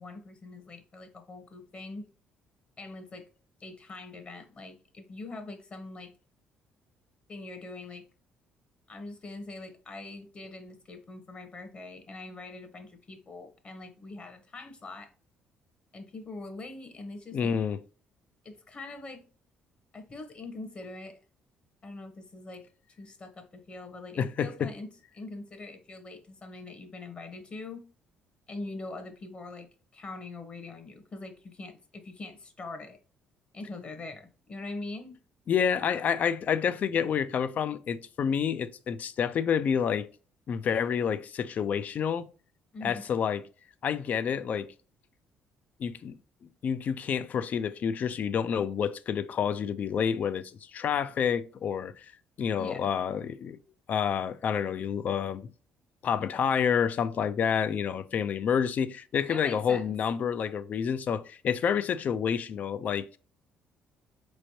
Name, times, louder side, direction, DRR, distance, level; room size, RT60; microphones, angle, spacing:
voice 1, 0.0-2.1 2.8-3.2 3.6-6.1 7.3-8.0 8.9-15.1 15.9-17.5 18.4-19.2 19.9-21.1 21.8-22.6 23.0-27.9 28.5-29.7 29.9-33.0 33.5-35.1 42.7-43.0 52.6-52.8 59.3-59.8, left 2 dB, 40° left, 0.9 m, -43 dB
voice 2, 17.3-17.8 24.2-24.7 35.5-40.1 40.5-42.3 42.8-43.4 43.8-44.7 45.8-46.2 46.6-52.1 52.4-53.6 53.9-55.5 56.0-63.2, left 7 dB, 55° left, 0.4 m, -28 dB
4.1 x 3.1 x 2.7 m
supercardioid pair, 75°, 3 cm